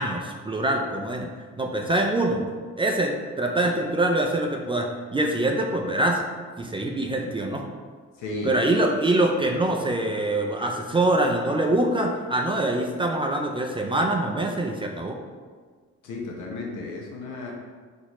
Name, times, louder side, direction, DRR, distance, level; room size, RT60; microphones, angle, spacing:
voice 1, 0.0-2.4 2.8-6.2 6.6-7.6 8.4-15.2, right 1 dB, 20° right, 2 dB, 0.3 m, -24 dB
voice 2, 8.2-8.6 16.0-17.5, left 3 dB, 85° left, -1 dB, 0.9 m, -33 dB
4.0 x 2.7 x 3.0 m, 1.5 s
cardioid pair, 90°, 30 cm